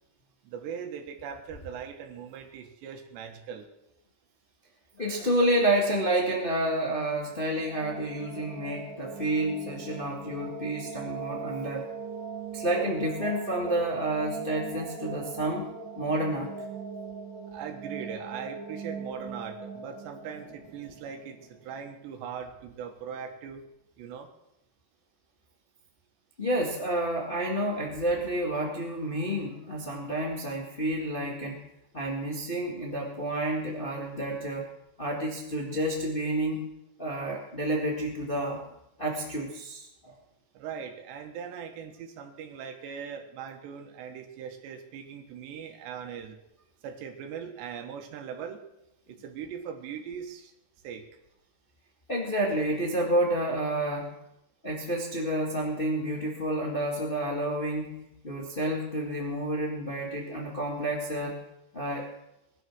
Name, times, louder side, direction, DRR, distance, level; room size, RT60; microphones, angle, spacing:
voice 1, 0.4-3.7 17.5-23.6 24.0-24.3 40.6-46.4 46.8-48.6 49.1-50.5 50.8-51.1, right 7 dB, 80° right, 4 dB, 3.8 m, -40 dB
voice 2, 5.0-11.9 12.5-15.7 16.0-16.5 26.4-31.6 31.9-34.6 35.0-36.7 37.0-38.7 39.0-40.1 52.1-54.1 54.6-61.4 61.7-62.1, right 1 dB, 55° left, -1 dB, 0.6 m, -29 dB
sound 1, 7.3-22.1, right 6 dB, 40° right, 1.8 m, -40 dB
20.0 x 11.0 x 6.3 m, 0.85 s
omnidirectional pair, 4.9 m